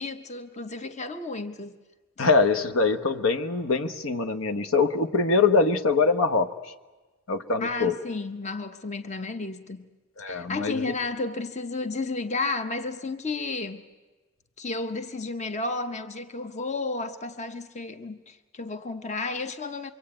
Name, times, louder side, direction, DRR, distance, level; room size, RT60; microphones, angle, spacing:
voice 1, 0.0-1.8 2.2-2.3 7.6-9.9 10.3-13.8 14.6-19.9, left 3 dB, 35° left, 9 dB, 1.1 m, -32 dB
voice 2, 2.2-6.5 7.3-7.9 10.2-10.8, left 4 dB, 80° left, 8 dB, 1.1 m, -23 dB
25.5 x 23.5 x 8.8 m, 1.2 s
head